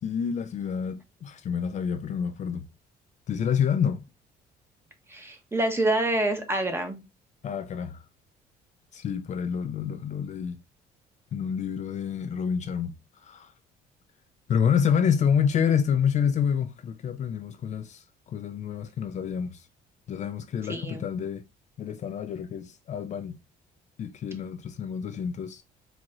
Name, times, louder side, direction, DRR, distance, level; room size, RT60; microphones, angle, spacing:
voice 1, 0.0-2.7 3.3-4.0 7.4-8.0 8.9-10.6 11.3-12.9 13.2-13.5 14.5-19.7 20.1-21.5 21.8-23.4 24.0-25.6, left 7 dB, 45° left, 0.4 m, -28 dB
voice 2, 5.1-7.0 20.6-21.0, right 1 dB, 15° right, 0.9 m, -27 dB
4.7 x 2.9 x 2.5 m
cardioid pair, 110°, 17 cm